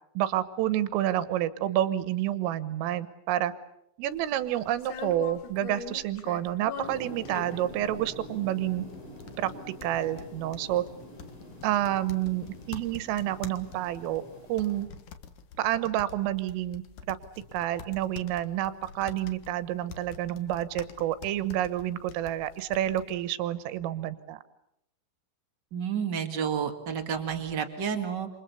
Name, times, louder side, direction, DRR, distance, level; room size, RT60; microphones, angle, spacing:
voice 1, 0.2-3.5 4.0-8.9 9.4-9.5 9.8-10.8 11.6-14.2 14.5-14.9 15.6-16.8 17.1-17.2 17.5-24.4, right 13 dB, 90° right, 13 dB, 3.8 m, -29 dB
sound 1, 4.1-23.1, left 7 dB, 60° left, 2.3 m, -45 dB
sound 2, 6.8-14.8, equal, 40° left, 8.0 m, -46 dB
voice 2, 25.7-28.3, right 7 dB, 70° right, 4 dB, 1.0 m, -30 dB
28.5 x 28.0 x 6.9 m, 0.80 s
omnidirectional pair, 5.7 m